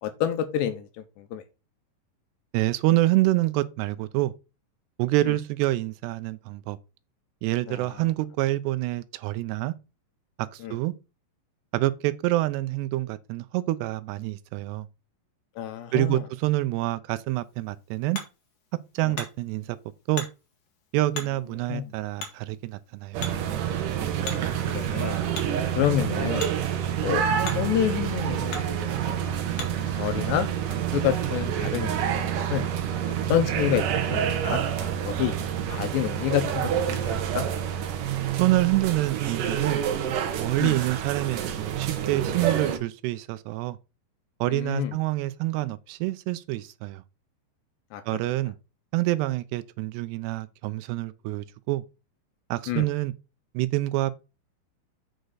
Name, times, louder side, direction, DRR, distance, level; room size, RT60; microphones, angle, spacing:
voice 1, 0.0-0.9 1.2-1.4 5.3-5.4 7.7-8.0 10.6-10.8 15.6-16.2 19.0-19.1 21.7-21.9 24.2-24.4 24.7-25.2 25.8-26.5 27.0-27.3 27.5-29.4 29.9-30.5 30.9-32.6 33.1-35.3 35.7-37.5 40.6-40.8 44.5-44.9 47.9-48.0 52.7-52.9, left 11 dB, 80° left, 2.9 m, -29 dB
voice 2, 2.5-4.3 5.0-6.8 7.4-9.7 10.5-10.9 11.7-14.9 15.9-18.2 19.0-19.8 20.1-20.3 20.9-23.2 38.4-39.8 40.4-43.8 44.4-47.0 48.1-48.5 48.9-51.8 52.5-53.1 53.5-54.1, right 17 dB, 85° right, 2.4 m, -26 dB
Hammer, 17.3-29.9, left 4 dB, 50° left, 2.1 m, -43 dB
sound 1, 23.1-42.8, right 9 dB, 70° right, 2.1 m, -28 dB
Thunder / Rain, 28.2-38.4, right 4 dB, 45° right, 3.3 m, -46 dB
7.9 x 6.5 x 3.9 m
omnidirectional pair, 5.3 m